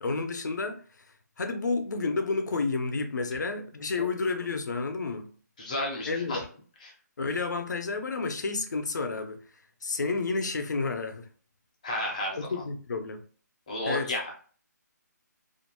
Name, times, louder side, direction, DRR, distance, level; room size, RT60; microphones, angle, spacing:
voice 1, 0.0-0.8 1.4-5.3 6.1-6.5 7.2-9.4 9.8-11.3 12.4-13.2 13.9-14.2, left 4 dB, 75° left, 0.5 m, -30 dB
voice 2, 5.6-6.4 6.8-6.9 11.8-12.4 13.7-14.4, left 1 dB, 25° left, 0.6 m, -32 dB
2.4 x 2.2 x 2.9 m
hypercardioid pair, 175°, 10 cm